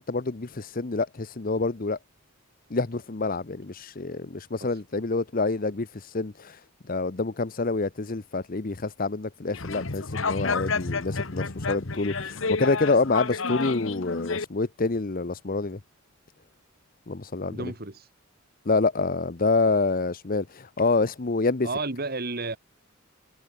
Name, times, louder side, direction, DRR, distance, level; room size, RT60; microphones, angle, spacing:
voice 1, 0.0-2.0 2.7-5.9 6.1-6.6 6.9-15.8 17.1-17.7 18.6-21.7, left 3 dB, 45° left, 0.8 m, -27 dB
sound 1, 9.5-14.4, left 4 dB, 70° left, 1.4 m, -30 dB
voice 2, 17.5-18.1 21.6-22.6, right 3 dB, 50° right, 2.4 m, -32 dB
head